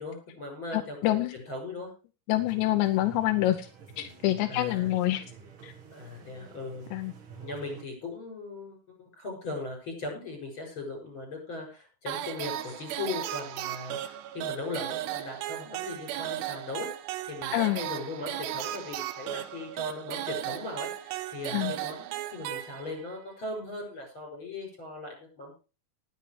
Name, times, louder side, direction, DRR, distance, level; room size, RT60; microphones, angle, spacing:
voice 1, 0.0-1.9 4.4-4.9 5.9-6.8 7.4-16.9 17.3-25.6, left 3 dB, 30° left, 3 dB, 7.2 m, -39 dB
voice 2, 0.7-1.3 2.3-3.7 4.0-5.2 5.6-5.7 6.9-7.1 17.5-17.8 21.5-21.7, left 15 dB, 85° left, 7 dB, 3.0 m, -26 dB
sound 1, 2.3-7.8, right 7 dB, 65° right, 1.3 m, -48 dB
sound 2, 12.1-23.2, right 13 dB, 80° right, 3.0 m, -36 dB
19.5 x 9.1 x 3.3 m, 0.32 s
omnidirectional pair, 5.0 m